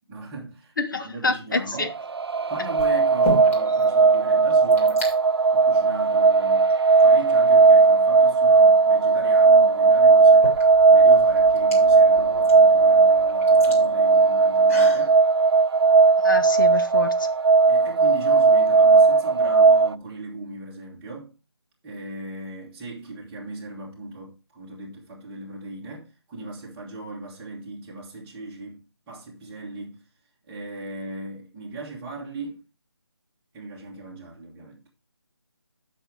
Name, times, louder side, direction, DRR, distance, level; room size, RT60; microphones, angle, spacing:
voice 1, 0.1-1.9 2.5-5.1 5.5-6.7 7.0-10.5 10.9-15.2 17.7-21.3 21.8-30.0 30.4-32.6 33.5-34.8, right 2 dB, 10° right, 1.5 m, -38 dB
voice 2, 0.8-1.9 16.2-17.3, left 3 dB, 50° left, 0.8 m, -27 dB
sound 1, 1.6-2.0 2.8-3.8 4.1-4.2 4.4-5.1 5.9-6.1 6.7-7.6 9.3-9.4 10.1-15.1, left 1 dB, 30° left, 2.6 m, -35 dB
sound 2, 1.8-19.9, right 4 dB, 70° right, 0.4 m, -17 dB
7.9 x 6.2 x 4.6 m
figure-of-eight pair, 160°, 14 cm